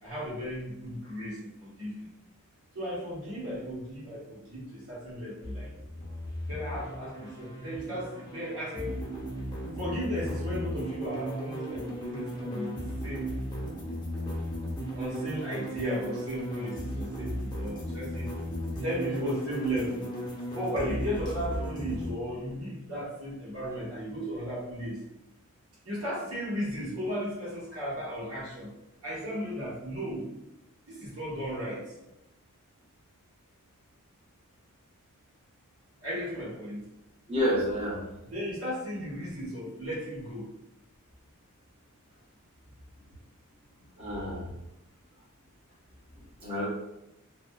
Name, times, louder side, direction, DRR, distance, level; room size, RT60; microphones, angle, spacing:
voice 1, 0.0-2.1 2.7-5.7 6.5-9.0 9.8-12.7 13.0-13.4 14.9-18.3 18.7-20.1 20.5-25.0 25.8-28.7 29.0-30.3 30.9-31.9 36.0-36.8 38.2-40.5, equal, 90° right, -8 dB, 1.2 m, -35 dB
sound 1, 5.4-22.1, equal, 20° left, 0.5 m, -36 dB
voice 2, 37.3-38.0 44.0-44.4 46.4-46.7, equal, 25° right, -8 dB, 0.8 m, -29 dB
2.5 x 2.3 x 2.2 m, 0.90 s
head